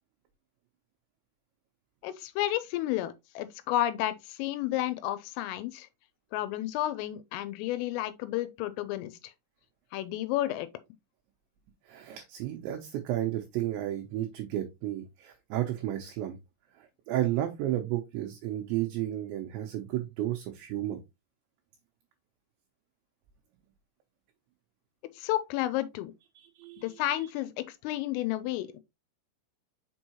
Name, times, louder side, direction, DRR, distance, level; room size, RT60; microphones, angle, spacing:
voice 1, 2.0-5.9 6.3-9.1 9.9-10.7 25.2-26.1 26.8-28.8, left 14 dB, 85° left, 3.2 m, -31 dB
voice 2, 11.9-16.4 16.8-21.0 26.4-26.8, right 13 dB, 80° right, 2.7 m, -32 dB
6.5 x 5.4 x 2.9 m
omnidirectional pair, 5.9 m